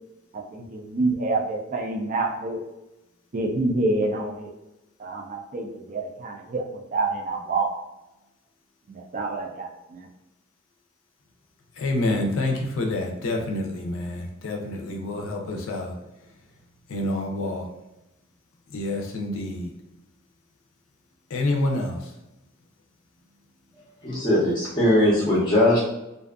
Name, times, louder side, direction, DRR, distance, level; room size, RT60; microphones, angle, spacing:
voice 1, 0.3-2.6 3.3-4.5 5.0-7.7 8.9-10.1, right 2 dB, 40° right, 2 dB, 0.4 m, -27 dB
voice 2, 11.7-16.0 16.9-17.7 18.7-19.7 21.3-22.1, left 2 dB, 70° left, 1 dB, 0.5 m, -27 dB
voice 3, 23.8-25.8, left 1 dB, 20° left, -8 dB, 0.6 m, -20 dB
2.5 x 2.3 x 2.4 m, 0.95 s
head